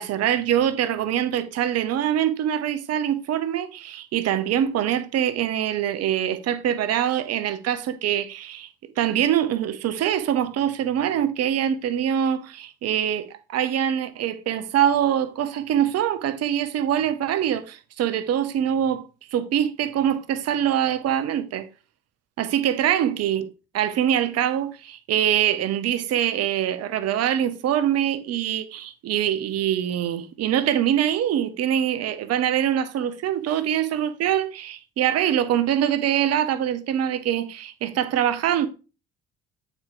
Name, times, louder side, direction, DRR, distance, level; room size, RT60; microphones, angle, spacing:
voice 1, 0.0-8.7 9.0-19.0 19.3-21.7 22.4-38.7, right 10 dB, 50° right, 0.9 m, -24 dB
8.9 x 4.6 x 3.8 m
figure-of-eight pair, 50°, 33 cm